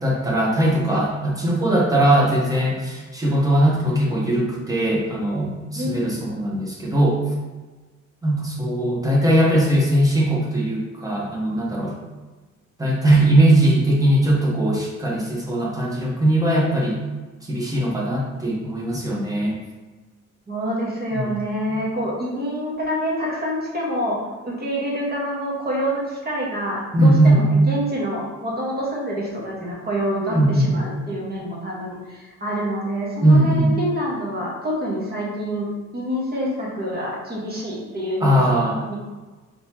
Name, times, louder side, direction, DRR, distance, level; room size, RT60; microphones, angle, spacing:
voice 1, 0.0-7.2 8.2-11.9 12.8-17.0 17.5-19.5 21.1-21.3 21.7-21.8 26.9-27.4 30.3-31.1 33.2-33.7 38.2-38.8, right 1 dB, 10° right, -3 dB, 1.2 m, -19 dB
voice 2, 20.5-38.9, equal, 30° right, -4 dB, 1.5 m, -27 dB
4.1 x 3.5 x 2.9 m, 1.3 s
cardioid pair, 90°, 30 cm